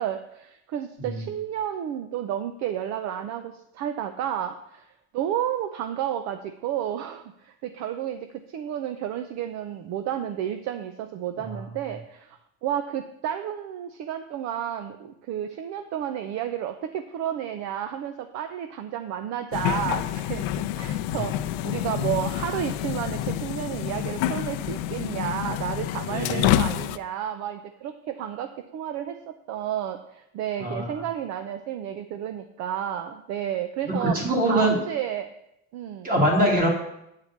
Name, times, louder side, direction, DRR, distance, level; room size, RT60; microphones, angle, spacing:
voice 1, 0.0-20.4 20.7-34.2 34.5-35.3 35.7-36.1, right 10 dB, 55° right, 8 dB, 0.6 m, -31 dB
sound 1, 19.5-27.0, left 12 dB, 85° left, 0.6 m, -28 dB
voice 2, 26.1-26.5 30.6-30.9 34.0-34.8 36.0-36.7, right 1 dB, 25° right, 0 dB, 2.4 m, -23 dB
8.4 x 4.8 x 7.2 m, 0.82 s
cardioid pair, 155°, 33 cm